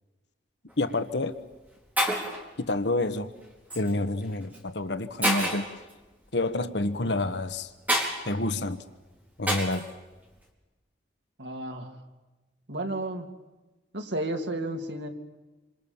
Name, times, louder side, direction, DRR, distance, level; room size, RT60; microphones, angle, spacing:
Shatter, 0.7-0.9 1.6-1.7 2.0-2.4 3.7-3.9 4.5-4.6 5.2-5.7 7.9-8.1 9.5-9.8, equal, 10° right, 4.6 m, -27 dB
voice 1, 0.8-1.4 2.6-3.3 3.7-5.7 6.3-7.7 8.2-8.8 9.4-9.9, left 2 dB, 75° left, 10 dB, 1.4 m, -28 dB
voice 2, 11.4-12.0 12.7-13.3 13.9-15.1, right 1 dB, 80° right, 3 dB, 3.2 m, -32 dB
27.5 x 27.5 x 7.3 m, 1.2 s
head